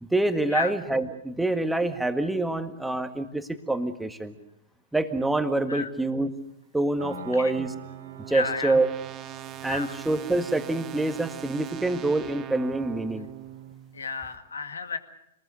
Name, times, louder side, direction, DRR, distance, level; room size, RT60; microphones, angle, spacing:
voice 1, 0.0-4.3 4.9-6.3 6.7-7.7 8.3-8.9 9.6-13.3, right 2 dB, 5° right, 8 dB, 1.8 m, -26 dB
sound 1, 7.0-14.1, right 12 dB, 30° right, 1.5 m, -42 dB
Piano, 7.0-13.7, right 4 dB, 70° right, 3.4 m, -48 dB
voice 2, 8.3-8.8 9.6-10.0 13.9-15.0, left 5 dB, 80° left, 9 dB, 2.0 m, -32 dB
26.5 x 20.5 x 6.6 m, 0.81 s
hypercardioid pair, 110°, 0 cm